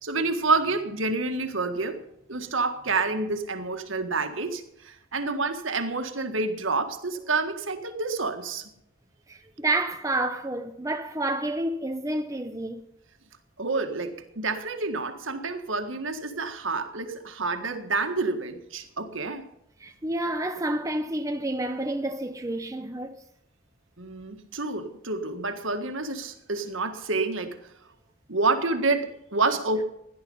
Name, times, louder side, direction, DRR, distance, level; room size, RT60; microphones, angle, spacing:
voice 1, 0.0-2.0 2.3-8.7 13.6-19.4 24.0-27.6 28.3-29.8, right 3 dB, 65° right, 1.7 m, -28 dB
voice 2, 9.3-12.9 19.8-23.2, right 2 dB, 15° right, 0.7 m, -29 dB
16.5 x 11.0 x 5.5 m
head